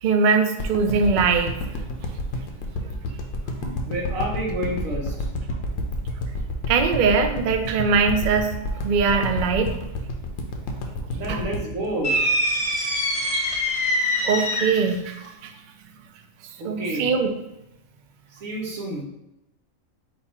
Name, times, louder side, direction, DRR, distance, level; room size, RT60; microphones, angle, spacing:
voice 1, 0.0-1.5 3.6-3.8 6.7-9.8 11.3-11.4 14.2-15.5 16.6-17.3, right 5 dB, 65° right, 5 dB, 0.5 m, -22 dB
sound 1, 0.6-12.9 13.3-13.4, left 1 dB, 75° left, 1.1 m, -29 dB
voice 2, 3.9-5.3 11.1-12.2 16.6-17.1 18.3-19.0, right 1 dB, 90° right, -1 dB, 1.4 m, -29 dB
sound 2, 12.0-14.9, equal, 35° left, 0.8 m, -24 dB
5.2 x 2.4 x 4.2 m, 0.90 s
omnidirectional pair, 1.4 m